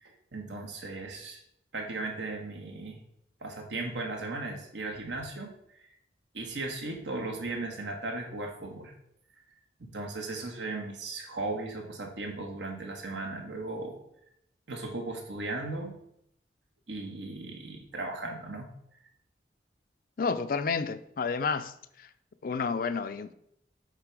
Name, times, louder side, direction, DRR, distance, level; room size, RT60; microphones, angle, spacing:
voice 1, 0.0-1.4 1.7-3.0 3.4-5.5 6.3-8.9 9.8-14.0 14.7-16.0 16.9-18.7, right 2 dB, 85° right, 1.4 m, -37 dB
voice 2, 20.2-22.1 22.4-23.3, left 5 dB, 50° left, 0.4 m, -31 dB
7.5 x 3.8 x 4.7 m
head